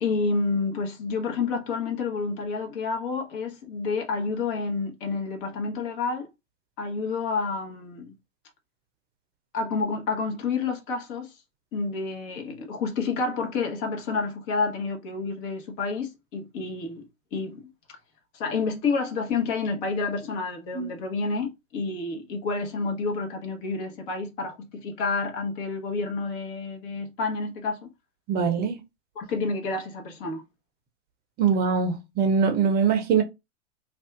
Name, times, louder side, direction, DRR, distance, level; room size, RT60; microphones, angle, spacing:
voice 1, 0.0-6.3 6.8-8.2 9.5-11.3 11.7-17.0 17.3-17.6 18.3-27.9 29.2-30.4, left 4 dB, 45° left, 1.1 m, -29 dB
voice 2, 28.3-28.8 31.4-33.2, right 6 dB, 25° right, 0.7 m, -23 dB
2.6 x 2.4 x 3.5 m
figure-of-eight pair, 105°, 37 cm